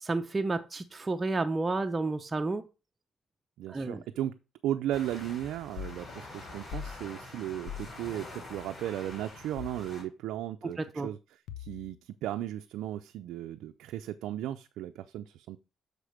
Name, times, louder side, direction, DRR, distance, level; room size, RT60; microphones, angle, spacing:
voice 1, 0.0-2.7 3.7-4.0 10.6-11.1, right 3 dB, 25° right, 5 dB, 0.7 m, -31 dB
voice 2, 3.6-4.4 4.6-11.2 11.6-15.6, right 12 dB, 85° right, 7 dB, 0.5 m, -36 dB
sound 1, 4.9-10.0, left 2 dB, 35° left, 4.6 m, -46 dB
sound 2, 5.8-6.0 6.7-7.0 7.7-7.9 9.6-9.9 11.5-12.0, left 9 dB, 85° left, 0.7 m, -40 dB
6.6 x 4.9 x 6.5 m, 0.31 s
cardioid pair, 90°, 0 cm